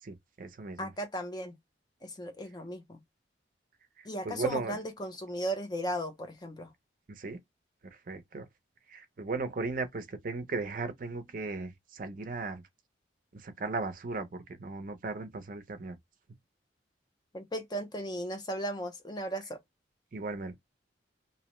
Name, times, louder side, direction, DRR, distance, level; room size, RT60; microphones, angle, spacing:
voice 1, 0.0-0.9 4.0-4.7 7.1-7.4 8.1-8.5 8.9-12.6 13.3-16.0 20.1-20.6, right 3 dB, 45° right, 0.5 m, -37 dB
voice 2, 0.8-1.6 2.0-3.0 4.0-6.7 17.3-19.6, equal, 20° left, 0.5 m, -36 dB
2.6 x 2.0 x 2.9 m
head